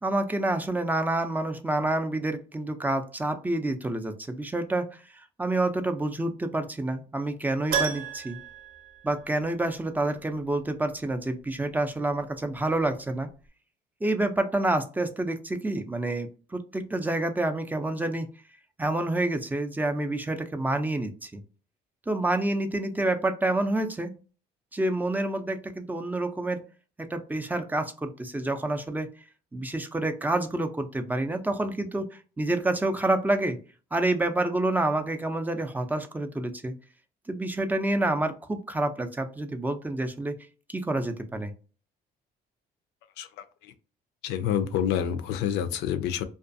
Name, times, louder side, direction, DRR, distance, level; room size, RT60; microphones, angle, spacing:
voice 1, 0.0-4.9 5.4-8.4 9.0-13.3 14.0-18.3 18.8-21.4 22.1-24.1 24.7-26.6 27.1-29.1 29.5-32.1 32.4-33.6 33.9-36.7 37.3-40.4 40.7-41.5, right 2 dB, 10° right, 7 dB, 0.4 m, -28 dB
Keyboard (musical), 7.7-9.8 10.0-10.1 12.8-12.9 13.1-13.2, right 7 dB, 60° right, 0.7 m, -32 dB
voice 2, 44.2-46.2, left 9 dB, 85° left, 11 dB, 0.4 m, -27 dB
2.4 x 2.3 x 2.5 m, 0.36 s
cardioid pair, 110°, 17 cm